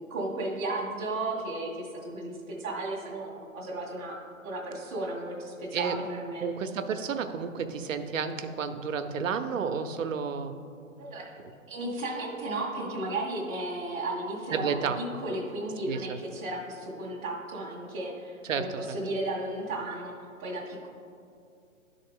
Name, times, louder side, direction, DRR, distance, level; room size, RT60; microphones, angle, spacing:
voice 1, 0.0-4.2 4.4-6.5 11.0-11.3 11.7-20.1 20.4-20.9, right 2 dB, 10° right, -6 dB, 0.5 m, -34 dB
voice 2, 6.4-10.6 14.5-15.0 15.9-16.2 18.5-19.0, right 6 dB, 70° right, 8 dB, 0.6 m, -31 dB
10.5 x 3.7 x 3.6 m, 2.4 s
hypercardioid pair, 140°, 40 cm